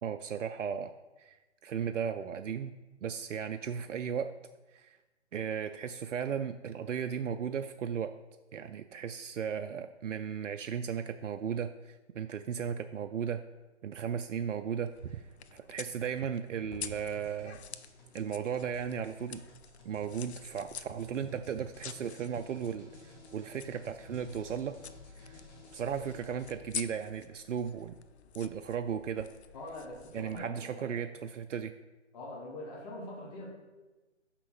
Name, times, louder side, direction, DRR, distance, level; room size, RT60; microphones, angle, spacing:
voice 1, 0.0-2.7 3.0-4.3 4.7-5.0 5.3-8.2 8.5-13.4 13.8-17.6 18.1-19.4 19.9-24.8 25.1-25.4 25.7-28.0 28.3-29.3 30.1-31.7, right 7 dB, 90° right, 9 dB, 0.5 m, -36 dB
sound 1, 14.9-30.5, left 8 dB, 65° left, 0.5 m, -48 dB
sound 2, 16.9-26.5, left 1 dB, 15° left, 1.3 m, -56 dB
voice 2, 29.5-31.0 32.1-33.5, left 1 dB, 35° left, -2 dB, 1.6 m, -43 dB
6.0 x 5.8 x 4.8 m, 1.1 s
hypercardioid pair, 150°, 36 cm